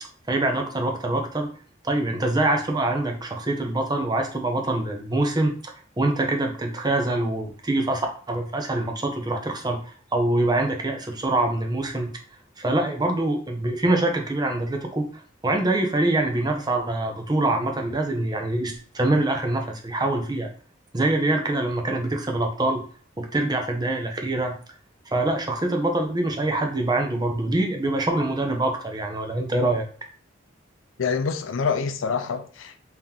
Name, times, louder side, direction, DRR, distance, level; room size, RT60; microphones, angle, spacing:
voice 1, 0.3-1.5 1.8-9.8 10.1-12.1 12.6-15.0 15.4-20.5 20.9-22.8 23.2-24.6 25.1-29.9, right 2 dB, 20° right, 0.7 m, -24 dB
voice 2, 31.0-32.8, left 5 dB, 90° left, 0.5 m, -26 dB
3.7 x 2.9 x 3.6 m
head